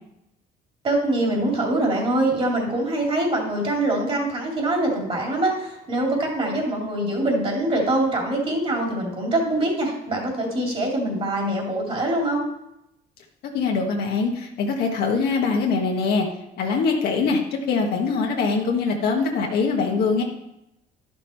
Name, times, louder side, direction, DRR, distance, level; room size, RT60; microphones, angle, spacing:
voice 1, 0.8-12.5, right 1 dB, 35° right, 0 dB, 2.7 m, -24 dB
voice 2, 13.4-16.3 16.6-17.4 17.7-20.2, left 4 dB, 70° left, 1 dB, 1.4 m, -23 dB
11.0 x 6.1 x 4.4 m, 0.85 s
cardioid pair, 110°, 17 cm